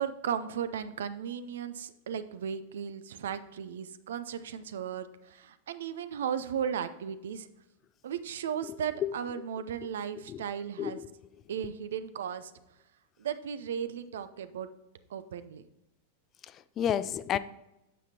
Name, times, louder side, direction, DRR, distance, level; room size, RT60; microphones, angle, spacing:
voice 1, 0.0-7.5 8.0-11.0 11.5-12.5 13.2-14.7 15.1-15.6, right 8 dB, 65° right, 12 dB, 0.6 m, -36 dB
voice 2, 10.8-11.1 16.5-17.4, left 10 dB, 30° left, 15 dB, 0.4 m, -31 dB
9.1 x 7.4 x 2.8 m, 0.93 s
figure-of-eight pair, 95°, 0 cm